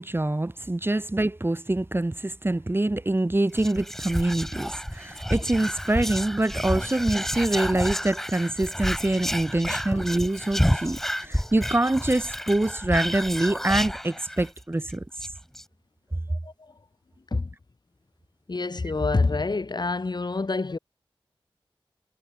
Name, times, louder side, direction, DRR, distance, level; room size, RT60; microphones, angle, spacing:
voice 1, 0.0-15.0, right 2 dB, 25° right, 1.3 m, -25 dB
Whispering, 3.5-14.6 14.9-15.0 15.2-15.6, equal, 5° left, 2.3 m, -30 dB
voice 2, 9.7-10.0 16.3-16.7 17.3-17.5 18.5-20.8, left 3 dB, 50° left, 1.8 m, -27 dB
wide cardioid pair, 60°, 9 cm